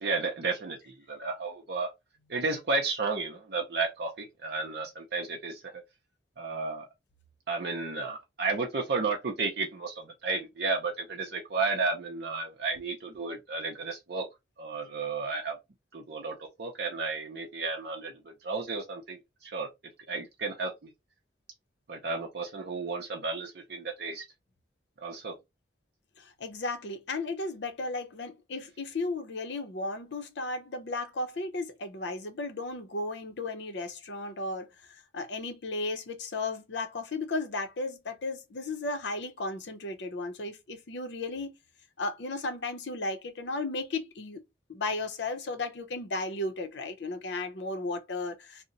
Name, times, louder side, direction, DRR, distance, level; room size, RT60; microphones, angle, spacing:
voice 1, 0.0-1.9 2.3-5.8 6.4-6.9 7.5-14.3 14.6-15.6 15.9-19.7 20.1-20.9 21.9-24.3 25.0-25.3, right 4 dB, 55° right, 0.6 m, -33 dB
voice 2, 26.2-41.5 42.0-44.4 44.7-48.6, left 2 dB, 65° left, 0.6 m, -35 dB
2.8 x 2.0 x 3.8 m
head